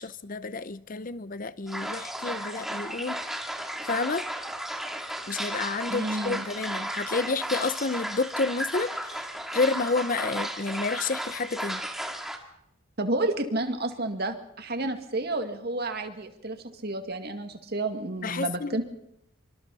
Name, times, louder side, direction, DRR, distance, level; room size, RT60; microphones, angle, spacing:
voice 1, 0.0-3.2 3.9-4.3 5.3-9.2 9.5-11.8 18.2-18.8, left 3 dB, 40° left, 0.7 m, -30 dB
sound 1, 1.7-12.4, right 1 dB, ahead, 2.0 m, -34 dB
voice 2, 5.9-6.5 13.0-16.6 16.8-18.8, right 2 dB, 50° right, 2.2 m, -30 dB
25.5 x 25.0 x 4.2 m
head